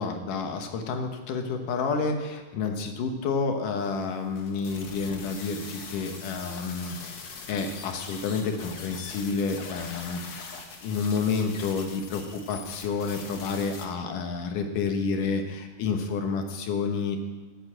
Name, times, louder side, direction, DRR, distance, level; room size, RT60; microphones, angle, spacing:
voice 1, 0.0-7.2 7.5-10.5 10.8-17.2, left 5 dB, 85° left, 5 dB, 2.8 m, -29 dB
sound 1, 3.8-13.9, left 4 dB, 55° left, 1.3 m, -42 dB
12.5 x 8.2 x 7.7 m, 1.3 s
omnidirectional pair, 3.7 m